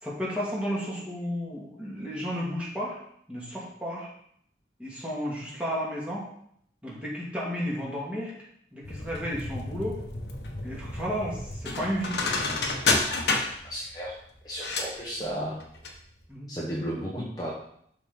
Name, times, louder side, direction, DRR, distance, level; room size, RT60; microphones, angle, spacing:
voice 1, 0.0-3.0 3.3-4.1 4.8-6.3 6.8-8.3 8.7-10.0 10.6-12.3 16.3-16.5, equal, 5° right, -6 dB, 2.3 m, -32 dB
sound 1, 8.8-16.0 16.2-16.3, left 3 dB, 80° left, 1.3 m, -30 dB
voice 2, 13.6-14.2 14.4-15.6 16.5-17.5, equal, 20° left, -5 dB, 1.2 m, -33 dB
11.5 x 4.4 x 3.9 m, 0.69 s
head